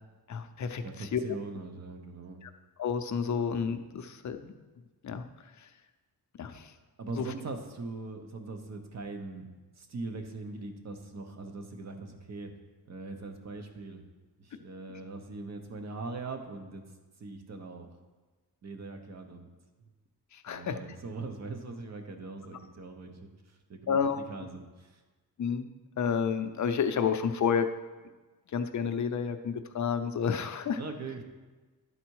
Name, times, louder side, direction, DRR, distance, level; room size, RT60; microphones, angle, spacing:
voice 1, 0.3-1.4 2.4-2.5 2.8-4.5 5.0-5.2 5.6-5.7 6.4-6.7 7.2-7.3 20.3-20.8 23.9-24.2 25.4-25.7 26.0-27.7 28.5-30.8, left 6 dB, 50° left, 8 dB, 0.5 m, -30 dB
voice 2, 0.8-2.4 7.0-9.5 9.7-12.5 12.8-14.0 14.4-16.8 17.2-17.9 18.6-19.5 20.5-25.0 30.8-31.2, right 3 dB, 45° right, 5 dB, 0.8 m, -41 dB
11.5 x 4.1 x 4.6 m, 1.3 s
wide cardioid pair, 170°, 38 cm